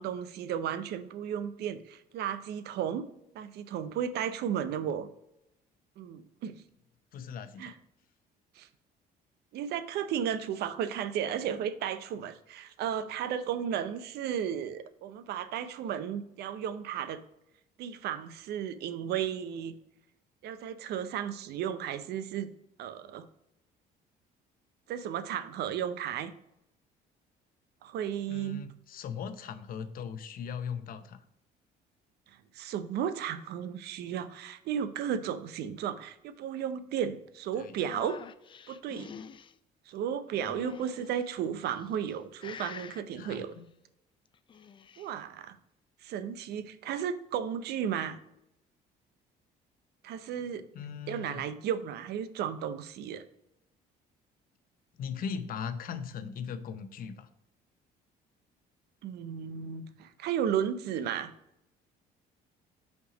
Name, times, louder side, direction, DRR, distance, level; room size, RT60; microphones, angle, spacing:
voice 1, 0.0-3.0 3.3-5.1 6.0-6.6 7.6-7.7 8.6-8.7 9.5-17.2 17.8-19.7 20.4-22.5 22.8-23.3 24.9-26.3 27.8-28.6 32.5-38.2 38.7-39.1 39.9-43.5 45.0-45.6 46.0-48.2 50.0-50.6 51.1-53.2 59.0-61.3, right 9 dB, 75° right, 13 dB, 0.6 m, -34 dB
voice 2, 7.1-7.7 28.3-31.2 37.6-37.8 43.2-43.6 50.7-51.4 55.0-57.3, left 6 dB, 55° left, 11 dB, 0.7 m, -39 dB
sound 1, 37.8-39.5 40.3-41.2 41.8-42.2 42.4-43.0 44.3-45.1, left 7 dB, 30° left, 0.4 m, -46 dB
5.5 x 4.5 x 5.0 m, 0.82 s
cardioid pair, 110°, 17 cm